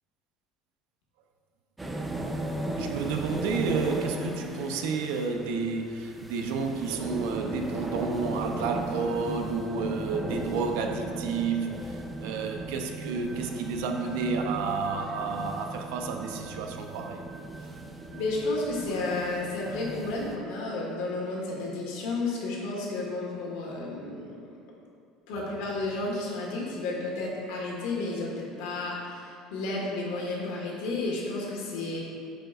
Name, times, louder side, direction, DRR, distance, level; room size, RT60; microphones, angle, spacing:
sound 1, 1.8-20.4, right 1 dB, 10° right, 0.3 m, -37 dB
voice 1, 2.8-17.2, right 4 dB, 85° right, 4 dB, 0.6 m, -31 dB
voice 2, 18.1-24.4 25.3-32.0, left 2 dB, 85° left, -3 dB, 1.6 m, -32 dB
10.5 x 5.2 x 2.5 m, 2.4 s
cardioid pair, 180°, 0 cm